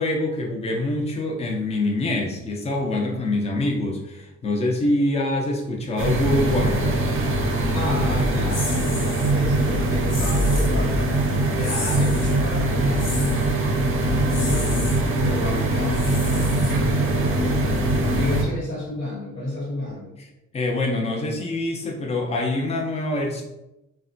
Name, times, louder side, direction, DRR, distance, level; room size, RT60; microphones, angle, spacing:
voice 1, 0.0-7.0 20.5-23.4, left 2 dB, 20° left, 0 dB, 0.6 m, -25 dB
sound 1, 6.0-18.4, right 1 dB, 40° right, 0.6 m, -22 dB
voice 2, 7.7-14.9 15.2-20.2, left 2 dB, 50° left, -5 dB, 1.1 m, -32 dB
sound 2, 8.5-9.3 10.1-10.8 11.6-12.4 13.0-13.5 14.3-15.0 15.9-17.1, left 2 dB, 80° left, 1.1 m, -33 dB
3.3 x 2.2 x 2.6 m, 0.94 s
cardioid pair, 85°, 32 cm